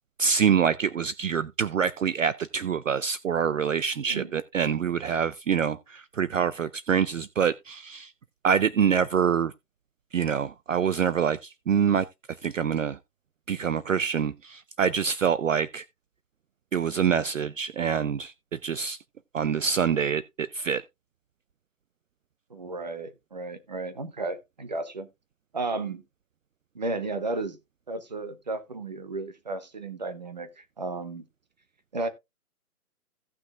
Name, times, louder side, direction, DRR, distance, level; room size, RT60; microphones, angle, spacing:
voice 1, 0.2-8.1 8.4-9.5 10.1-12.1 12.4-13.0 13.5-15.8 16.7-19.0 19.3-20.8, right 7 dB, 60° right, 0.5 m, -26 dB
voice 2, 22.5-25.1 25.5-26.0 26.7-27.6 27.9-31.2 31.9-32.1, right 3 dB, 30° right, 0.8 m, -33 dB
16.5 x 6.1 x 2.4 m
hypercardioid pair, 175°, 45 cm